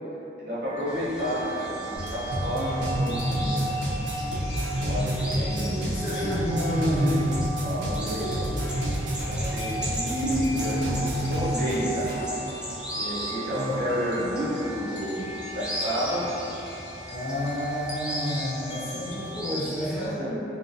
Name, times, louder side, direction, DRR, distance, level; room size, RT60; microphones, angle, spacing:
voice 1, 0.4-3.9 4.8-5.9 7.6-8.5 9.2-12.2 12.9-16.3 19.8-20.4, equal, 60° right, -9 dB, 0.8 m, -31 dB
sound 1, 0.6-19.4, right 1 dB, 85° left, 0.4 m, -41 dB
sound 2, 0.9-20.1, equal, 5° right, 0.3 m, -39 dB
sound 3, 2.0-12.3, right 1 dB, 90° right, 0.5 m, -29 dB
voice 2, 5.5-7.3 13.5-13.8 17.1-20.2, left 1 dB, 65° left, -10 dB, 0.8 m, -29 dB
2.7 x 2.0 x 2.6 m, 2.9 s
head